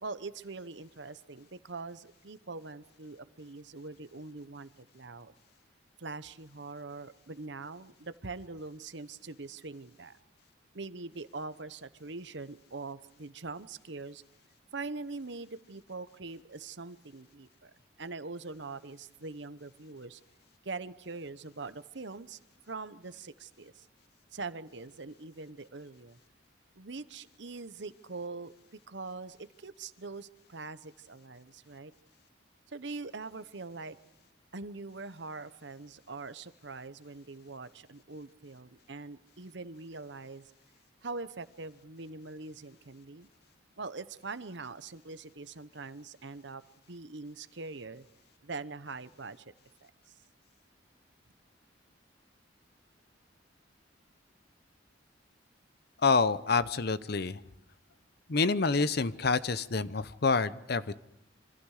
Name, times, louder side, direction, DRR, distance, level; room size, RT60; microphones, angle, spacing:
voice 1, 0.0-5.3 6.0-10.2 10.7-14.2 14.7-20.2 20.6-22.4 22.7-23.9 24.3-26.2 26.8-31.9 32.7-34.0 34.5-40.5 41.0-43.3 43.8-46.6 46.9-48.0 48.4-49.4 49.8-50.1, right 3 dB, 65° right, 13 dB, 1.0 m, -43 dB
voice 2, 56.0-57.4 58.3-61.0, left 4 dB, 55° left, 15 dB, 0.7 m, -27 dB
27.5 x 25.0 x 4.9 m, 0.83 s
head